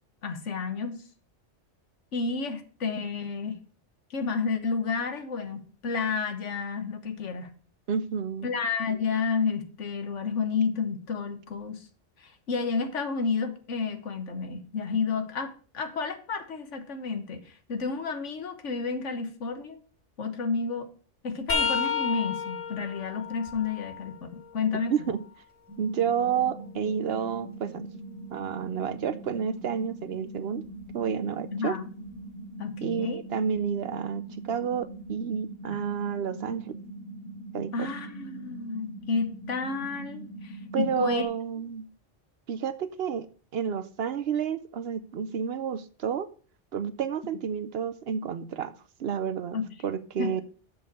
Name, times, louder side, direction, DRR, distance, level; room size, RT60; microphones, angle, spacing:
voice 1, 0.2-1.0 2.1-3.6 4.1-7.5 8.4-11.9 12.2-19.8 20.2-20.9 21.2-25.1 31.5-31.9 32.6-33.2 35.7-35.9 37.7-41.3 49.5-49.7 50.2-50.3, left 5 dB, 80° left, 1.5 m, -31 dB
voice 2, 7.9-8.5 24.9-25.3 25.8-27.9 28.3-30.7 30.9-31.8 32.8-36.8 37.5-37.9 40.7-41.9 42.5-43.3 43.5-46.3 46.7-48.7 49.0-49.6 49.8-50.4, right 7 dB, 65° right, 0.9 m, -30 dB
sound 1, 21.5-25.3 25.8-27.7 30.6-30.8 32.1-32.2 33.6-33.7, left 6 dB, 55° left, 1.6 m, -34 dB
sound 2, 25.7-41.2, right 2 dB, 25° right, 1.8 m, -42 dB
7.1 x 5.4 x 6.7 m
omnidirectional pair, 1.2 m